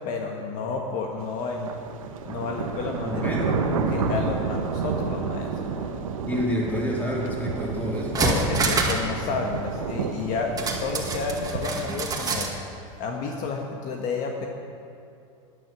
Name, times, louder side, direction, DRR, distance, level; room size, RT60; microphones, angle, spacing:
voice 1, 0.0-1.7 2.2-5.9 8.1-12.5 13.0-14.5, left 4 dB, 50° left, 1 dB, 1.6 m, -31 dB
sound 1, 1.4-11.7, right 5 dB, 85° right, 1.1 m, -30 dB
voice 2, 3.1-3.7 6.3-8.2, left 1 dB, 10° left, -4 dB, 3.8 m, -28 dB
sound 2, 8.0-9.1 9.4-9.5 10.6-12.5 12.9-13.0, right 3 dB, 20° right, 2.1 m, -26 dB
12.0 x 10.5 x 7.5 m, 2.6 s
hypercardioid pair, 105°, 17 cm